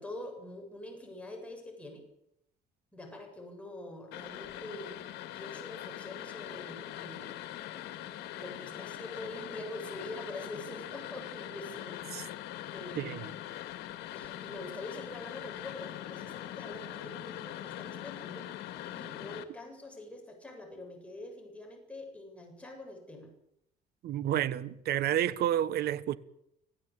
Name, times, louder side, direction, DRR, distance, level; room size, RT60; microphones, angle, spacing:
voice 1, 0.0-2.1 2.9-5.0 5.3-7.4 8.3-12.0 12.7-13.5 14.1-18.5 18.9-23.3, left 2 dB, 5° left, 7.8 m, -45 dB
sound 1, 4.1-19.4, left 13 dB, 85° left, 2.1 m, -42 dB
voice 2, 24.0-26.2, right 11 dB, 70° right, 1.3 m, -30 dB
25.5 x 15.5 x 8.8 m
cardioid pair, 110°, 17 cm